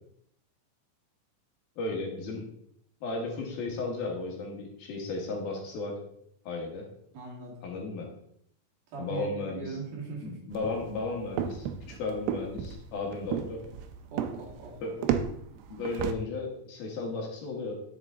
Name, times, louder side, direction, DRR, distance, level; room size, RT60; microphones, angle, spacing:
voice 1, 1.8-2.5 3.0-6.0 6.5-6.8 7.6-8.1 9.0-9.8 10.2-13.6 14.8-15.1 15.7-17.7, left 3 dB, 65° left, 0 dB, 3.1 m, -34 dB
voice 2, 7.1-7.5 8.9-10.4 14.1-14.8, right 4 dB, 60° right, -3 dB, 3.6 m, -40 dB
sound 1, 10.5-16.1, right 9 dB, 80° right, 2.7 m, -33 dB
11.0 x 7.2 x 3.7 m, 0.70 s
omnidirectional pair, 5.0 m